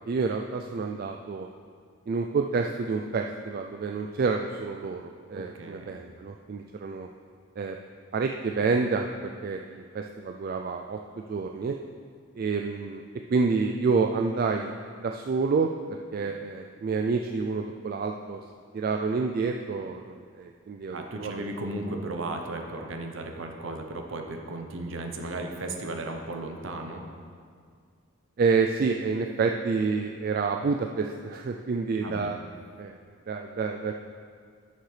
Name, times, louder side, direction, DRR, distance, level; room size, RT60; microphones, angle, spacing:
voice 1, 0.1-1.5 2.1-7.1 7.6-7.8 8.1-11.7 12.4-13.0 13.3-15.7 16.1-18.4 18.7-21.3 28.4-32.4 32.8-32.9 33.3-33.9, right 4 dB, 45° right, 3 dB, 0.3 m, -28 dB
voice 2, 5.3-6.0 20.9-27.0 32.0-32.3, right 2 dB, 65° right, 3 dB, 0.7 m, -35 dB
11.0 x 6.5 x 3.3 m, 2.1 s
head